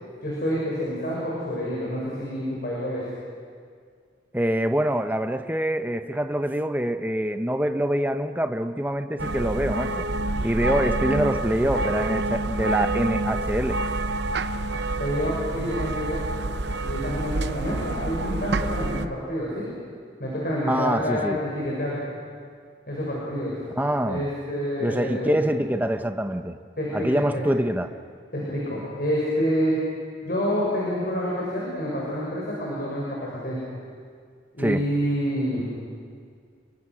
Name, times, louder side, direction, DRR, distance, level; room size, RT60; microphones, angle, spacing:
voice 1, 0.2-3.0 15.0-16.2 16.8-19.7 20.2-22.0 22.9-23.5 24.0-25.4 26.8-27.2 28.3-29.8 30.2-33.6 34.5-35.6, equal, 55° left, -5 dB, 6.3 m, -28 dB
voice 2, 4.3-10.0 10.4-13.8 20.7-21.4 23.8-24.3 24.8-26.6 26.9-27.9 34.6-34.8, right 1 dB, 10° right, 7 dB, 0.8 m, -25 dB
sound 1, 9.2-19.1, right 2 dB, 70° right, 0.8 m, -27 dB
30.0 x 23.5 x 6.2 m, 2.1 s
head